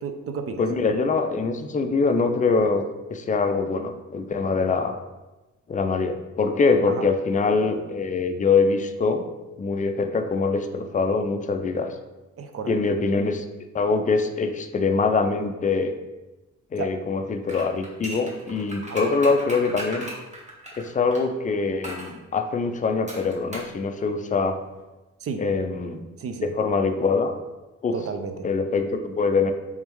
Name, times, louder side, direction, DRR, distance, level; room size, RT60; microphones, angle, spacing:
voice 1, 0.0-0.6 6.9-7.0 12.4-12.8 16.8-16.9 18.9-19.1 25.2-25.4 26.2-26.5 27.9-28.5, right 5 dB, 50° right, 7 dB, 0.5 m, -32 dB
voice 2, 0.6-2.8 3.1-4.9 5.7-9.2 9.6-11.9 12.7-13.4 13.7-15.9 16.7-20.1 20.8-24.6 25.4-26.1 26.4-27.3 27.8-28.0 28.4-29.5, left 4 dB, 25° left, 7 dB, 0.4 m, -23 dB
sound 1, 17.4-21.2 21.8-22.1 23.1-23.8 24.0-24.1, equal, 25° right, 1.1 m, -37 dB
3.5 x 3.4 x 3.0 m, 1.1 s
cardioid pair, 90°, 30 cm